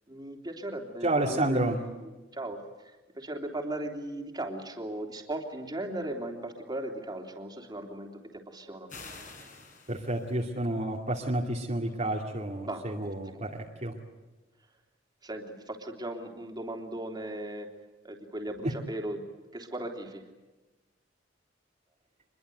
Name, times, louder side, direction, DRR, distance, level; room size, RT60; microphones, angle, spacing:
voice 1, 0.1-8.9 12.6-13.4 15.2-17.7 18.0-19.2 19.5-20.2, right 1 dB, 25° right, 3 dB, 3.3 m, -38 dB
voice 2, 1.0-1.8 9.9-13.5 13.8-13.9, right 1 dB, 40° right, -1 dB, 2.4 m, -30 dB
sound 1, 8.9-10.5, left 4 dB, 45° left, 6.4 m, -47 dB
26.0 x 22.0 x 8.0 m, 1.2 s
head